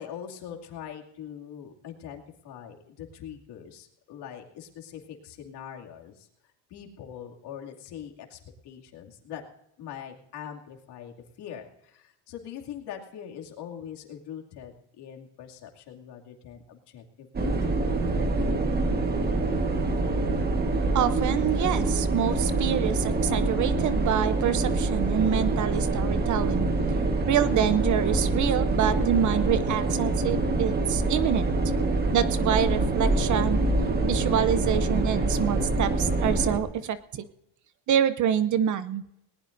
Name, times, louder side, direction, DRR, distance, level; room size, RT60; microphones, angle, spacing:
voice 1, 0.0-6.3 6.7-9.4 9.8-17.9, left 9 dB, 55° left, 1 dB, 2.6 m, -42 dB
sound 1, 17.3-36.6, right 2 dB, 20° right, 1.4 m, -25 dB
voice 2, 20.9-26.7 27.3-31.7 32.1-33.6 34.0-37.3 37.9-39.0, right 9 dB, 40° right, 13 dB, 0.7 m, -26 dB
19.5 x 19.0 x 2.6 m, 0.81 s
cardioid pair, 150°, 46 cm